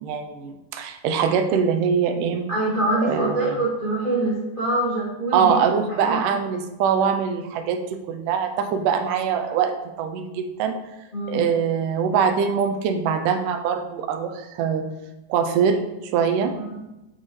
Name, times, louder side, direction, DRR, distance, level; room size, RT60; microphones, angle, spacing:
voice 1, 0.0-2.4 3.0-3.5 5.3-9.7 10.0-10.8 11.3-14.8 15.3-15.8 16.1-16.5, right 7 dB, 90° right, 6 dB, 2.2 m, -23 dB
voice 2, 2.5-5.6 6.0-6.4 11.1-11.4 16.6-16.7, right 1 dB, 25° left, -8 dB, 1.1 m, -24 dB
8.8 x 4.4 x 3.1 m, 0.96 s
omnidirectional pair, 3.7 m